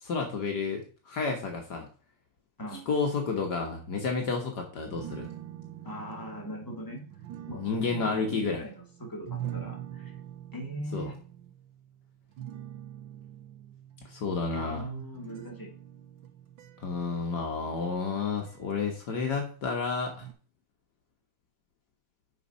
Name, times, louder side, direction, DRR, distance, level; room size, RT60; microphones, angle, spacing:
voice 1, 0.0-1.9 2.9-5.3 7.6-8.6 10.9-11.1 14.1-14.8 16.8-20.3, left 4 dB, 60° left, 3 dB, 1.8 m, -31 dB
voice 2, 2.6-2.9 5.8-7.1 7.5-7.6 7.9-10.1 10.5-11.1 14.5-15.7, right 1 dB, 10° left, 0 dB, 2.2 m, -40 dB
sound 1, 4.9-19.4 20.1-20.3, right 11 dB, 85° right, 1.6 m, -44 dB
6.6 x 5.4 x 5.4 m, 0.39 s
omnidirectional pair, 2.0 m